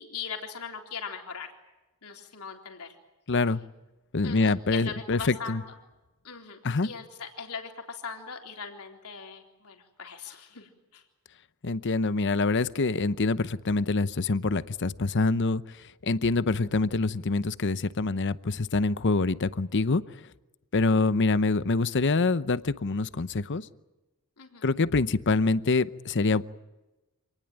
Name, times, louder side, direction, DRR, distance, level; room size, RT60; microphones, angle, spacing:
voice 1, 0.0-1.5 2.0-3.0 4.2-5.6 6.2-11.0 24.4-24.7, left 6 dB, 80° left, 3 dB, 3.8 m, -40 dB
voice 2, 3.3-3.6 4.1-5.6 6.6-6.9 11.6-15.6 16.0-20.0 20.7-23.7 24.6-26.4, left 3 dB, 55° left, 15 dB, 0.8 m, -25 dB
27.0 x 19.5 x 9.2 m, 1.1 s
head